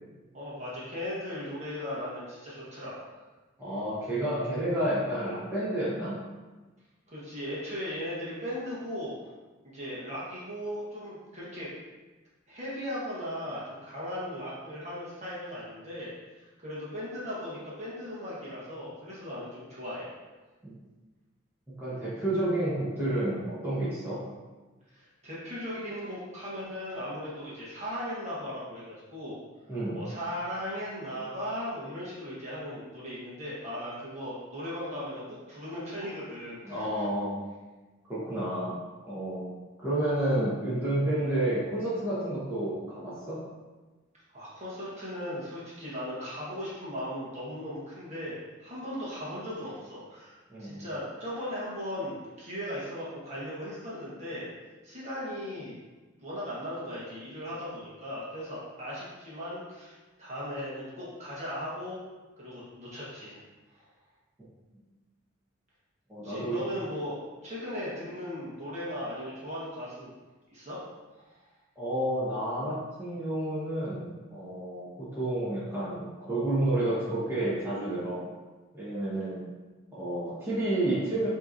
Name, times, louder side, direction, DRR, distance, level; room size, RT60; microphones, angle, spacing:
voice 1, 0.3-3.2 7.1-9.1 9.7-11.7 12.5-16.1 16.4-20.1 24.9-29.4 29.9-37.0 44.3-54.5 54.8-55.7 56.2-62.0 62.4-63.4 66.2-67.2 67.4-70.1 70.5-70.8 71.1-71.4, equal, 35° right, -8 dB, 1.2 m, -37 dB
voice 2, 3.6-6.2 20.6-20.7 21.8-24.2 29.7-30.0 36.7-37.4 38.1-38.8 39.0-39.5 39.8-43.4 50.5-50.8 66.1-66.6 71.8-78.2 78.7-79.4 79.9-81.3, right 1 dB, 10° right, -11 dB, 1.1 m, -30 dB
5.5 x 2.9 x 2.6 m, 1.2 s
head